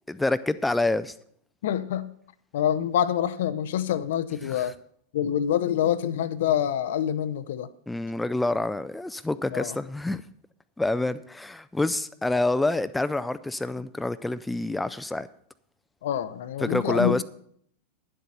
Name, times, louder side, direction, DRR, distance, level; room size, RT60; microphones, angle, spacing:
voice 1, 0.1-1.1 4.4-4.7 7.9-10.2 10.8-15.3 16.6-17.2, left 2 dB, 5° left, 14 dB, 0.4 m, -27 dB
voice 2, 1.6-2.1 2.5-4.8 5.1-7.7 9.5-9.8 16.0-17.2, left 10 dB, 55° left, 15 dB, 0.5 m, -26 dB
10.5 x 7.8 x 5.7 m, 0.66 s
figure-of-eight pair, 90°, 0 cm